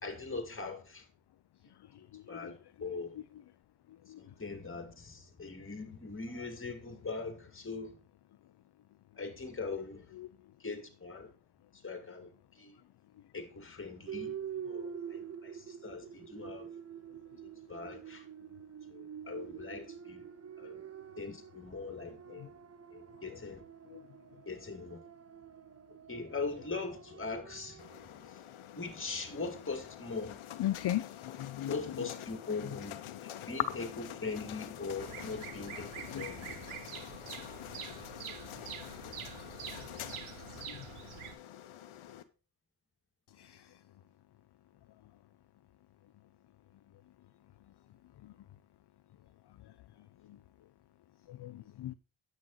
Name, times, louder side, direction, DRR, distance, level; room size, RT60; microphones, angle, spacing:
voice 1, 0.0-1.0 2.0-3.2 4.2-7.9 9.2-10.0 10.6-11.3 11.8-12.3 12.6-12.8 13.3-14.3 14.6-15.5 15.8-16.7 17.7-18.2 18.9-20.3 20.6-20.8 21.2-22.5 22.9-23.6 24.5-25.0 26.1-27.9 28.7-30.4 31.7-33.0 33.2-36.6, left 4 dB, 25° left, 2.2 m, -41 dB
sound 1, 14.1-28.3, right 8 dB, 30° right, 0.6 m, -47 dB
sound 2, 27.8-42.2, left 11 dB, 75° left, 0.9 m, -47 dB
voice 2, 30.6-31.0 31.4-31.8 36.1-36.2 40.7-40.8 51.3-51.9, left 13 dB, 55° left, 0.6 m, -35 dB
Bird vocalization bird call bird song, 35.0-41.3, right 9 dB, 90° right, 1.1 m, -46 dB
9.3 x 7.6 x 3.9 m
cardioid pair, 80°, 49 cm